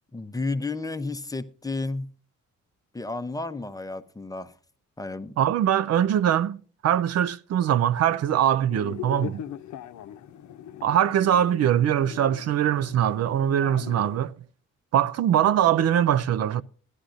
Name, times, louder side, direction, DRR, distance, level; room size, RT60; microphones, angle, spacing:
voice 1, 0.1-2.1 2.9-4.5 5.0-5.3, left 3 dB, 10° left, 0.7 m, -32 dB
voice 2, 5.4-9.4 10.8-14.3 14.9-16.6, right 10 dB, 55° right, 0.4 m, -22 dB
sound 1, 8.7-14.2, left 10 dB, 70° left, 0.7 m, -40 dB
15.5 x 11.5 x 2.5 m
cardioid pair, 90°, 30 cm